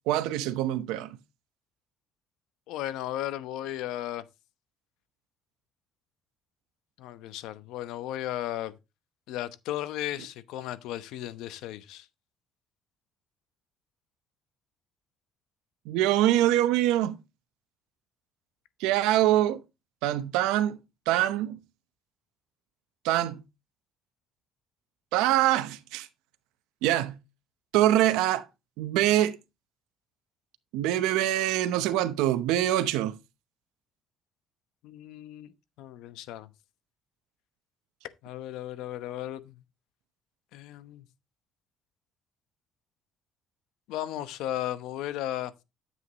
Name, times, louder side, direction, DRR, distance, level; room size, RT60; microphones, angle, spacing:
voice 1, 0.1-1.2 15.9-17.2 18.8-19.6 20.0-20.8 21.1-21.6 23.0-23.4 25.1-26.1 26.8-27.2 27.7-28.4 28.8-29.4 30.7-33.2, right 13 dB, 90° right, 0.7 m, -24 dB
voice 2, 2.7-4.2 7.0-8.7 9.3-12.1 34.8-36.5 38.2-39.6 40.5-41.0 43.9-45.5, left 13 dB, 80° left, 0.9 m, -35 dB
9.7 x 7.8 x 2.9 m
supercardioid pair, 85°, 0 cm